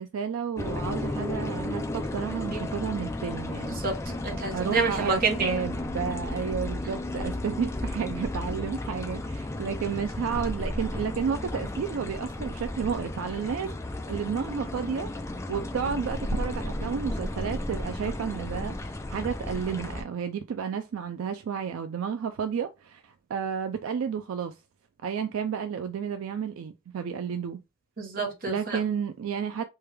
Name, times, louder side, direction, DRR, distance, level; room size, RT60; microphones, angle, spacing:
voice 1, 0.0-3.8 4.5-13.7 14.1-15.1 15.5-24.5 25.0-27.6 28.5-29.6, right 7 dB, 75° right, 0.3 m, -31 dB
sound 1, 0.6-20.0, left 1 dB, 15° left, 0.3 m, -33 dB
voice 2, 3.8-5.6 28.0-28.8, right 4 dB, 45° right, 0.9 m, -28 dB
3.3 x 2.2 x 3.2 m
head